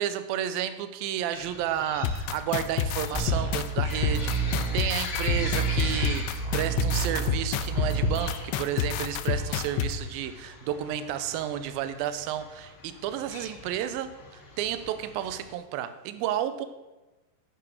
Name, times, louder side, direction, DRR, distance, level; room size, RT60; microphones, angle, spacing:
voice 1, 0.0-16.7, right 10 dB, 85° right, 11 dB, 2.1 m, -32 dB
sound 1, 1.3-15.5, left 4 dB, 45° left, 1.8 m, -42 dB
sound 2, 2.0-9.9, left 8 dB, 90° left, 2.8 m, -28 dB
sound 3, 3.1-8.1, right 6 dB, 40° right, 0.3 m, -30 dB
11.0 x 9.6 x 6.4 m, 1.1 s
omnidirectional pair, 4.9 m